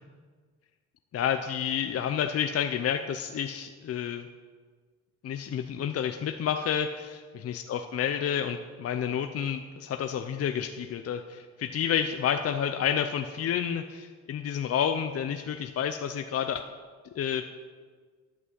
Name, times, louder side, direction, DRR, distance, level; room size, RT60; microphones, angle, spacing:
voice 1, 1.1-4.3 5.2-16.6 17.1-17.5, left 8 dB, 50° left, 7 dB, 0.7 m, -30 dB
11.0 x 6.0 x 7.6 m, 1.5 s
cardioid pair, 90°, 30 cm